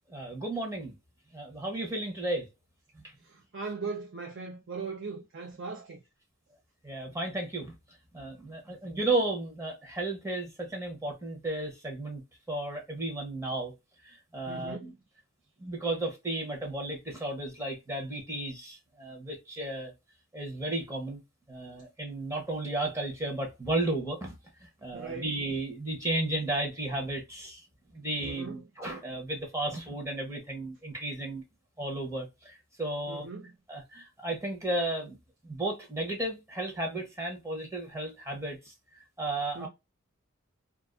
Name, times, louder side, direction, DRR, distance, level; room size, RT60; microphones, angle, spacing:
voice 1, 0.1-0.9 1.3-2.5 2.9-3.1 6.8-7.8 8.1-12.2 12.5-13.7 14.0-14.9 15.6-19.9 20.3-21.2 21.5-24.4 24.6-27.7 27.9-31.4 31.8-33.3 33.7-35.2 35.4-39.7, right 2 dB, 15° right, 0.7 m, -34 dB
voice 2, 3.2-6.0 14.5-14.9 24.9-25.3 28.2-28.6 33.1-33.5 39.5-39.7, right 4 dB, 55° right, 0.5 m, -39 dB
2.4 x 2.3 x 2.3 m
head